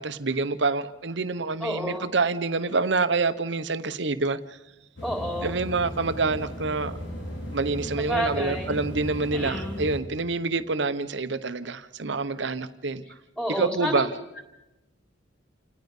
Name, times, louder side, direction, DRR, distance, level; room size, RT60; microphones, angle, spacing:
voice 1, 0.0-4.4 5.4-7.0 7.5-13.0 13.5-14.1, right 3 dB, 65° right, 13 dB, 0.9 m, -27 dB
voice 2, 1.6-2.1 5.0-5.5 8.0-8.8 9.3-9.8 13.4-14.1, equal, 5° left, 2 dB, 3.5 m, -30 dB
sound 1, 5.0-10.0, equal, 75° left, 5.4 m, -36 dB
29.0 x 19.0 x 5.4 m, 1.0 s
head